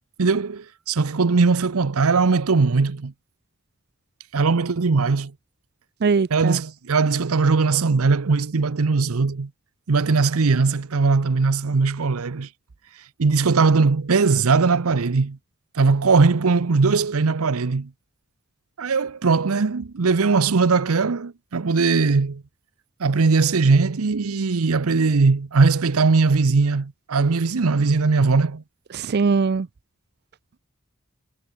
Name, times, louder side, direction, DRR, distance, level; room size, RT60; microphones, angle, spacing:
voice 1, 0.2-3.1 4.3-5.3 6.3-9.5 9.9-12.5 13.2-15.4 15.7-17.9 18.8-22.4 23.0-28.6, right 4 dB, 80° right, 0.7 m, -20 dB
voice 2, 6.0-6.6 28.9-29.7, right 4 dB, 50° right, 0.5 m, -21 dB
head